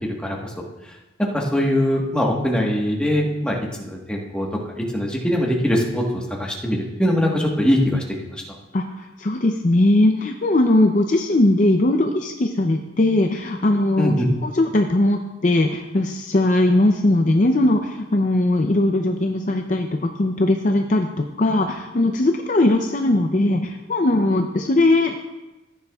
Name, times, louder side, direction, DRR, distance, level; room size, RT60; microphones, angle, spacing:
voice 1, 0.0-0.5 1.2-4.5 4.8-8.4 14.0-14.3, equal, 5° left, -2 dB, 1.3 m, -22 dB
voice 2, 8.7-14.1 14.4-25.2, left 1 dB, 40° left, 4 dB, 0.5 m, -19 dB
15.0 x 9.5 x 2.3 m, 1.1 s
head